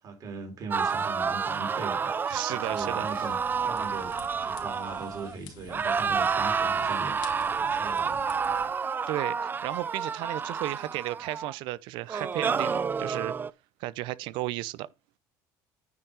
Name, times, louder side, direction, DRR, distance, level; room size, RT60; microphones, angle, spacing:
voice 1, 0.0-2.2 2.5-3.4 3.6-4.2 4.4-7.2 7.5-8.2, right 4 dB, 45° right, 4.0 m, -39 dB
sound 1, 0.7-5.4 5.7-11.5 12.1-13.5, right 6 dB, 25° right, 0.4 m, -29 dB
voice 2, 2.3-3.1 9.1-9.4 9.6-13.3 13.8-14.9, right 17 dB, 80° right, 0.6 m, -34 dB
sound 2, 2.6-8.7, left 6 dB, 70° left, 2.7 m, -49 dB
9.6 x 4.6 x 4.9 m
cardioid pair, 110°, 8 cm